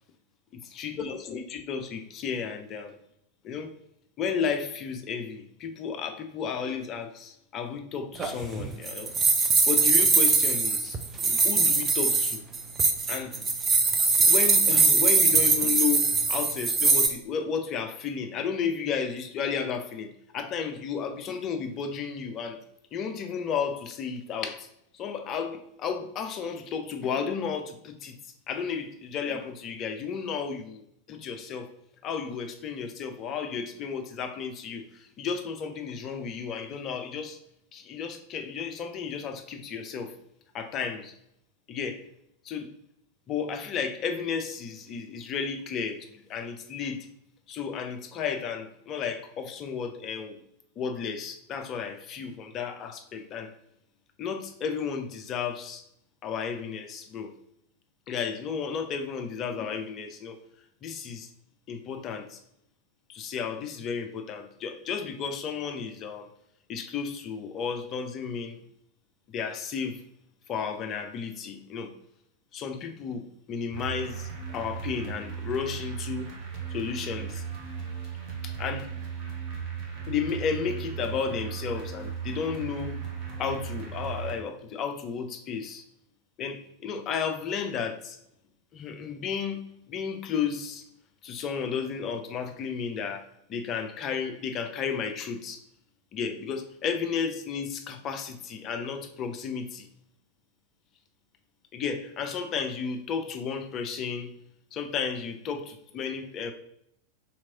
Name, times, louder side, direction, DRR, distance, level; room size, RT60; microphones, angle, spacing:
voice 1, 0.7-3.0 3.4-3.7 4.2-9.1 9.7-11.0 11.4-12.4 13.1-13.4 14.2-22.6 22.9-24.7 24.9-28.2 28.5-31.7 32.0-37.4 37.7-40.1 40.5-41.1 41.7-42.0 42.4-42.7 43.3-47.1 47.5-50.4 50.8-53.5 54.2-55.8 56.2-57.3 58.1-60.4 60.8-61.3 61.7-62.4 63.1-66.3 66.7-68.6 69.3-70.0 70.5-71.9 72.5-76.3 76.7-77.4 78.4-78.9 80.1-83.0 83.4-85.8 86.4-88.2 88.7-90.8 91.2-95.6 96.1-99.9 101.7-104.3 104.7-106.5, left 6 dB, 30° left, 6 dB, 0.5 m, -33 dB
sound 1, 8.2-17.1, right 4 dB, 20° right, 0.4 m, -22 dB
sound 2, 73.7-84.3, right 7 dB, 40° right, 0.9 m, -36 dB
3.4 x 3.0 x 2.8 m, 0.75 s
figure-of-eight pair, 90°, 0 cm